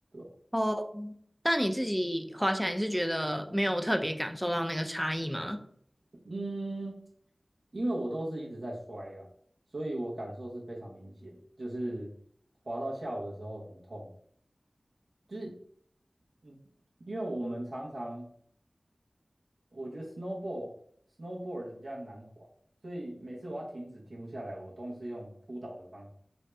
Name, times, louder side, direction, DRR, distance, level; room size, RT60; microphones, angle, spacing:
voice 1, 0.5-1.1 1.4-5.6, equal, ahead, 6 dB, 0.4 m, -30 dB
voice 2, 6.2-7.0 7.7-9.3 9.7-12.1 12.6-14.1 15.3-15.6 16.4-16.6 17.0-18.3 19.7-20.7 21.2-22.5 22.8-26.1, right 1 dB, 75° right, -4 dB, 0.9 m, -38 dB
3.2 x 2.7 x 3.3 m, 0.63 s
wide cardioid pair, 50°, 0 cm